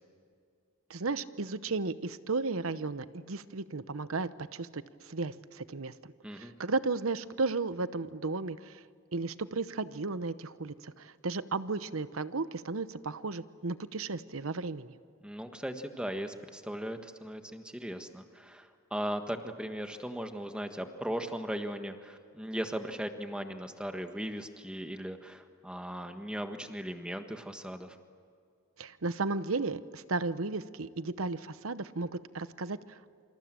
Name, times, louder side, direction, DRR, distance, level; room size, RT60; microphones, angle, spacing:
voice 1, 0.9-8.8 9.1-15.0 28.8-33.2, right 3 dB, 90° right, 14 dB, 0.9 m, -34 dB
voice 2, 15.2-28.0, equal, 5° right, 6 dB, 1.5 m, -38 dB
28.0 x 26.5 x 7.6 m, 2.3 s
head